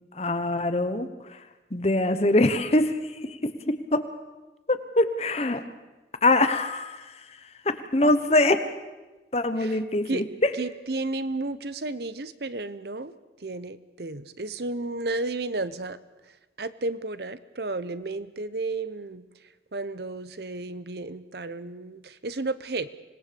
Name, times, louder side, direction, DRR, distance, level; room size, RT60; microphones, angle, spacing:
voice 1, 0.1-1.4 1.7-3.4 3.9-4.0 4.7-5.6 6.2-7.0 7.6-8.6 9.3-10.5, left 2 dB, 35° left, 10 dB, 1.1 m, -23 dB
voice 2, 10.6-13.1 13.4-16.0 16.6-19.2 19.7-22.9, right 2 dB, 65° right, 14 dB, 0.9 m, -32 dB
25.5 x 19.0 x 7.0 m, 1.1 s
head